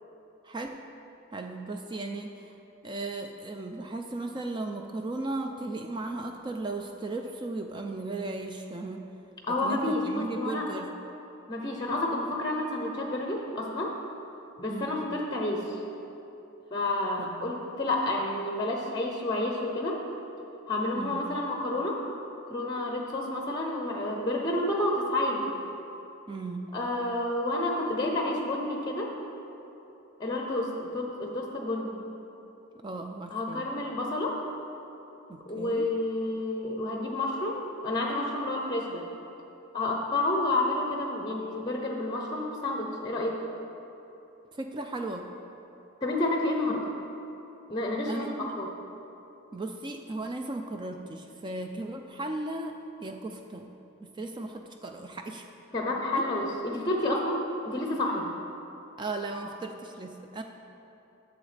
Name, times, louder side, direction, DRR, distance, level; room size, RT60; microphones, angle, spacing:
voice 1, 0.4-0.8 1.3-2.6 2.8-9.1 9.5-10.9 14.7-15.0 17.2-17.5 20.9-21.2 26.3-26.7 32.8-33.6 35.3-35.9 44.5-45.3 48.1-48.5 49.5-53.7 54.0-55.5 56.2-56.3 59.0-60.4, right 2 dB, 20° right, 4 dB, 0.3 m, -36 dB
voice 2, 9.4-10.6 11.5-13.9 14.6-15.7 16.7-20.0 20.7-22.0 22.5-25.5 26.7-29.1 30.2-32.0 33.3-34.4 35.5-39.0 39.7-43.4 46.0-46.8 47.7-48.7 55.7-58.3, left 1 dB, 20° left, 0 dB, 0.7 m, -30 dB
12.0 x 7.0 x 3.3 m, 2.9 s
head